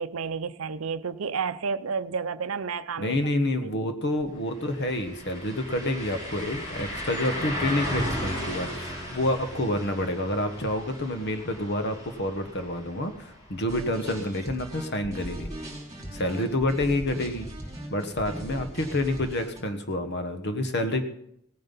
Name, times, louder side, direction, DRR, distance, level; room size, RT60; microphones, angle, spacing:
voice 1, 0.0-3.2 3.6-3.7, right 5 dB, 75° right, 0.6 m, -31 dB
voice 2, 3.0-15.5 16.1-17.5 17.9-21.0, left 1 dB, 55° left, 1.4 m, -28 dB
sound 1, 4.2-4.3 4.6-14.4 14.8-14.9 17.6-17.7, equal, 35° left, 6.8 m, -36 dB
sound 2, 13.7-19.6, right 1 dB, 20° right, 4.7 m, -39 dB
17.0 x 9.4 x 5.5 m
head